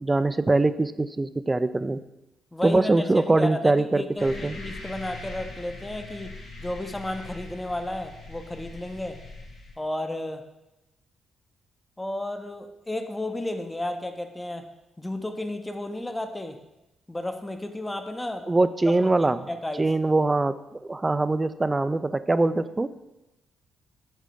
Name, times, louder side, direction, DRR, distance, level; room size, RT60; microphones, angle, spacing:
voice 1, 0.0-2.0 2.6-4.6 18.5-19.5 19.8-22.9, right 2 dB, 25° right, 14 dB, 0.3 m, -23 dB
voice 2, 2.5-6.3 6.6-9.2 9.8-10.4 12.0-14.7 15.0-16.6 17.1-18.5 19.0-19.9, left 1 dB, 15° left, 7 dB, 0.6 m, -33 dB
sound 1, 4.2-9.7, left 2 dB, 75° left, 1.4 m, -41 dB
7.2 x 3.7 x 3.6 m, 0.94 s
hypercardioid pair, 45°, 0 cm